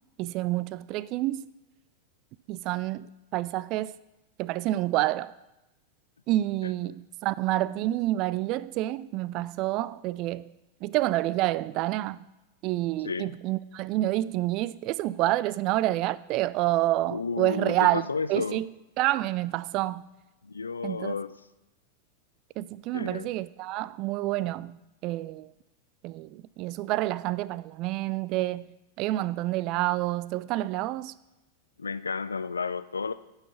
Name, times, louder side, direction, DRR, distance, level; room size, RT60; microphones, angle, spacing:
voice 1, 0.2-1.5 2.5-4.0 4.4-5.3 6.3-10.5 10.8-12.3 12.6-18.7 19.0-20.1 20.8-21.1 22.6-24.8 25.0-25.5 26.0-31.2, right 16 dB, 40° right, 0.3 m, -28 dB
voice 2, 17.1-18.6 20.4-21.3 22.9-23.3 31.8-33.1, left 4 dB, 75° left, 0.4 m, -32 dB
9.8 x 5.7 x 6.8 m
figure-of-eight pair, 90°, 0 cm